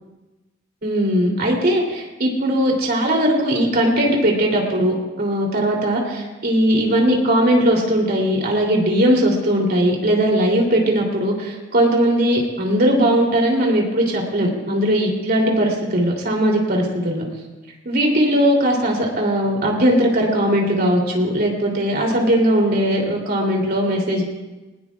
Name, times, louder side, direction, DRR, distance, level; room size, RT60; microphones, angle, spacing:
voice 1, 0.8-17.2 17.8-24.2, equal, 55° right, -1 dB, 3.2 m, -19 dB
20.0 x 19.0 x 2.4 m, 1.1 s
head